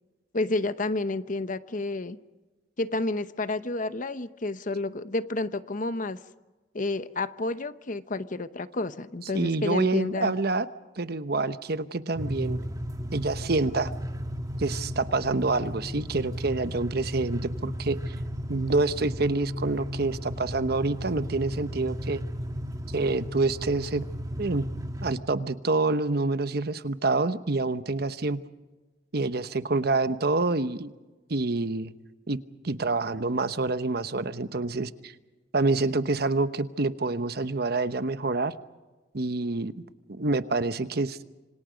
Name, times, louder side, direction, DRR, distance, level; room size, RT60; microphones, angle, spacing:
voice 1, 0.3-2.2 2.8-6.2 6.7-10.3, left 2 dB, 45° left, 12 dB, 0.9 m, -30 dB
voice 2, 9.3-10.7 11.0-12.6 13.1-13.9 14.6-18.1 18.5-22.2 22.9-24.1 24.4-24.7 25.0-28.4 29.1-30.9 31.3-31.9 32.3-32.4 32.6-35.1 35.5-38.5 39.1-39.7 40.1-41.2, right 3 dB, 60° right, 12 dB, 1.0 m, -27 dB
sound 1, 12.2-25.2, equal, 20° right, 1.8 m, -35 dB
27.0 x 25.5 x 5.2 m, 1.2 s
head